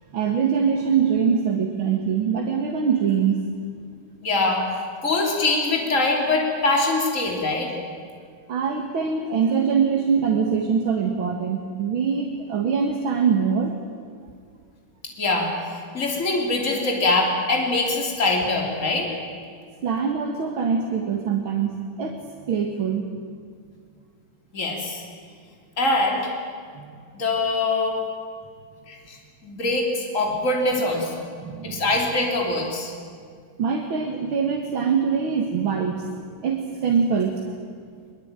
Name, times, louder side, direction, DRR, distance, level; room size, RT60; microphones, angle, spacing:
voice 1, 0.1-3.4 8.5-13.7 19.8-21.7 22.0-22.2 22.5-23.1 26.8-26.9 31.4-31.8 33.6-36.1 36.4-37.4, right 6 dB, 70° right, 2 dB, 2.5 m, -23 dB
voice 2, 4.2-4.6 5.0-7.7 15.0-19.1 24.5-25.0 25.8-26.3 27.1-28.0 28.9-29.2 29.4-31.2 31.6-32.9, left 2 dB, 35° left, 0 dB, 3.5 m, -23 dB
23.0 x 22.0 x 9.0 m, 2.1 s
omnidirectional pair, 2.3 m